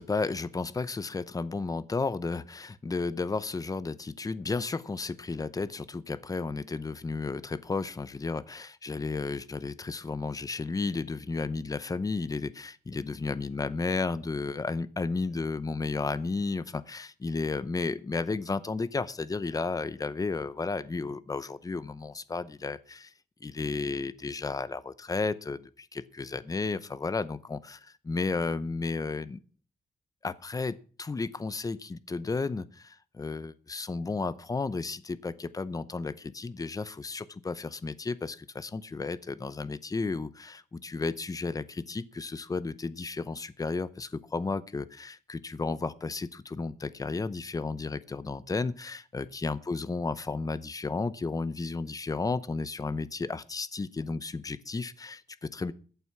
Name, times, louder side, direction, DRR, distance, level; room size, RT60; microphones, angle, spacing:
voice 1, 0.0-23.1 23.4-29.4 30.2-55.7, left 4 dB, 20° left, 16 dB, 0.7 m, -33 dB
14.0 x 8.0 x 6.0 m, 0.40 s
wide cardioid pair, 155°, 17 cm